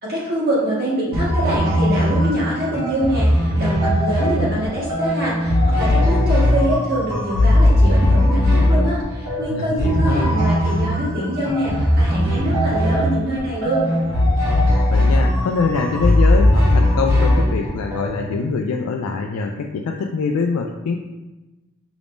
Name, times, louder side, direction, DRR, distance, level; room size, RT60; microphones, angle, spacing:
voice 1, 0.0-13.9, equal, 45° right, -7 dB, 1.5 m, -24 dB
sound 1, 1.1-18.4, left 1 dB, 70° right, 1.3 m, -18 dB
voice 2, 9.5-10.3 14.9-21.0, left 4 dB, 85° left, 2 dB, 0.3 m, -24 dB
5.8 x 3.5 x 2.5 m, 1.1 s
head